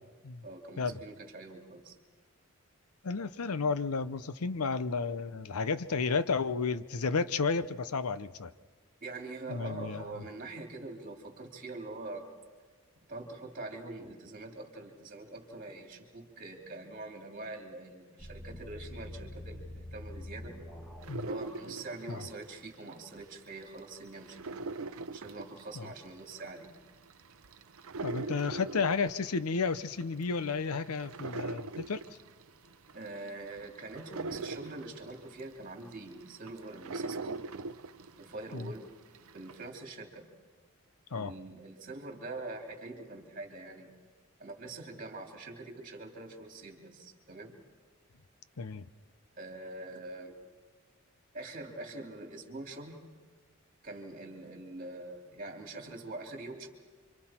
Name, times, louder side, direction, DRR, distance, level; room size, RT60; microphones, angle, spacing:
voice 1, 0.4-2.0 9.0-12.2 13.0-20.6 21.2-24.5 25.1-26.7 32.9-37.4 38.1-38.9 39.3-40.3 41.1-43.9 44.4-47.5 49.4-50.4 51.3-53.0 53.8-56.7, right 2 dB, 40° right, 1 dB, 3.0 m, -44 dB
voice 2, 3.0-8.5 9.5-10.0 21.1-21.3 22.1-22.2 25.8-25.9 28.0-32.0 38.5-38.7 41.1-41.3 48.6-48.8, left 4 dB, 85° left, 14 dB, 0.7 m, -32 dB
sound 1, 18.2-21.1, left 1 dB, 5° left, 2.0 m, -45 dB
sound 2, 21.0-23.3 23.6-38.8 39.1-39.7, right 3 dB, 70° right, 0.6 m, -41 dB
30.0 x 25.0 x 4.4 m, 1.5 s
head